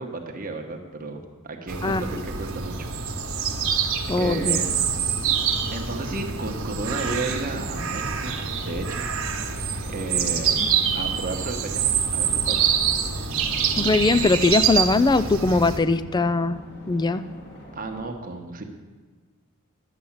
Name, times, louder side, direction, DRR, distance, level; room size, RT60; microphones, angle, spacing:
voice 1, 0.0-2.9 4.2-4.9 5.7-8.4 8.7-9.1 9.8-10.7 10.9-11.9 12.1-12.7 17.7-18.6, right 3 dB, 40° right, 3 dB, 1.1 m, -33 dB
sound 1, 1.7-15.8, right 7 dB, 60° right, 1.3 m, -26 dB
voice 2, 4.1-4.6 13.8-16.6 16.9-17.2, left 3 dB, 20° left, 13 dB, 0.3 m, -20 dB
sound 2, 4.6-18.1, equal, 50° left, 2.3 m, -44 dB
11.0 x 7.8 x 7.2 m, 1.4 s
head